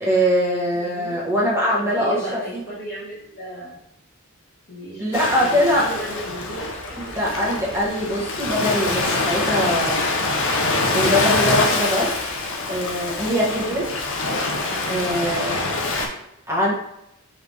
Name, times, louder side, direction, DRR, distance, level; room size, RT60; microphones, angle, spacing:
voice 1, 0.0-2.4 5.0-5.9 7.0-10.0 10.9-12.1 12.7-13.9 14.9-15.6 16.5-16.7, equal, 10° right, -6 dB, 1.1 m, -22 dB
voice 2, 0.7-1.2 1.7-3.8 4.7-7.1, right 1 dB, 45° left, -6 dB, 1.6 m, -35 dB
Ocean, 5.1-16.1, left 2 dB, 60° left, 0.6 m, -24 dB
3.8 x 3.2 x 3.3 m, 0.81 s
head